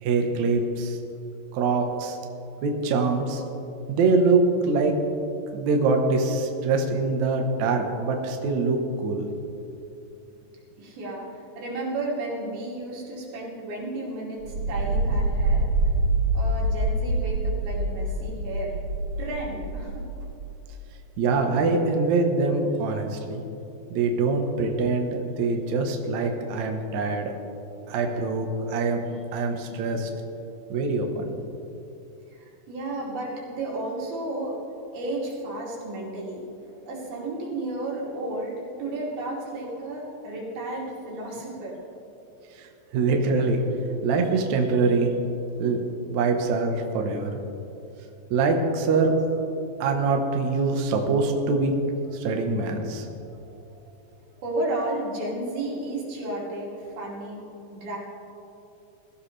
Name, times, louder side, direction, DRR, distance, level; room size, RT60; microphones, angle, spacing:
voice 1, 0.0-1.0 1.5-2.2 2.6-3.4 3.9-4.9 5.5-9.3 21.2-23.4 23.9-27.3 27.9-29.0 29.3-30.1 30.7-31.3 42.6-42.7 42.9-43.6 44.0-45.1 45.6-45.8 46.1-47.3 48.3-49.1 49.8-51.7 52.1-53.1, right 3 dB, 60° right, 3 dB, 2.2 m, -24 dB
voice 2, 10.8-15.6 16.3-18.7 19.2-19.9 32.3-34.6 34.9-36.5 36.9-41.8 54.4-58.0, right 2 dB, 85° right, -4 dB, 4.8 m, -33 dB
sound 1, 14.4-20.5, right 2 dB, 45° right, 3.8 m, -26 dB
21.5 x 15.0 x 3.3 m, 2.8 s
omnidirectional pair, 4.1 m